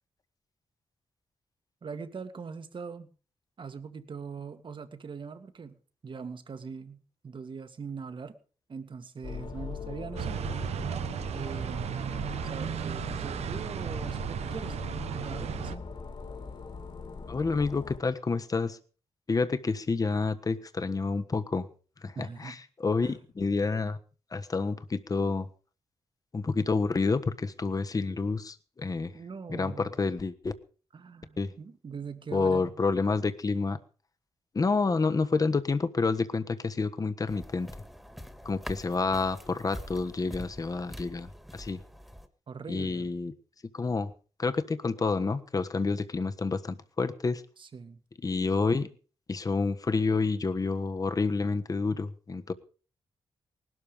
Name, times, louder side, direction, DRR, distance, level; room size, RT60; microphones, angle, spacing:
voice 1, 1.8-3.1 3.6-8.4 8.7-10.4 11.3-14.8 15.1-15.8 22.2-22.6 23.0-23.2 29.1-29.9 30.9-32.8 42.5-43.1 47.6-48.0, right 5 dB, 50° right, 10 dB, 1.9 m, -42 dB
sound 1, 9.2-18.0, left 5 dB, 50° left, 2.9 m, -41 dB
sound 2, 10.2-15.8, right 9 dB, 85° right, 0.8 m, -34 dB
voice 2, 17.3-18.8 19.3-21.7 22.0-22.5 22.8-24.0 24.3-25.5 26.3-29.1 29.5-30.5 31.4-31.5 32.3-33.8 34.5-37.7 38.4-41.8 42.7-43.3 43.7-44.1 44.4-47.4 48.2-48.9 49.3-52.5, left 4 dB, 35° left, 9 dB, 1.4 m, -29 dB
sound 3, 37.3-42.3, equal, ahead, 1.9 m, -45 dB
19.5 x 12.5 x 5.2 m, 0.39 s
cardioid pair, 95°, 11 cm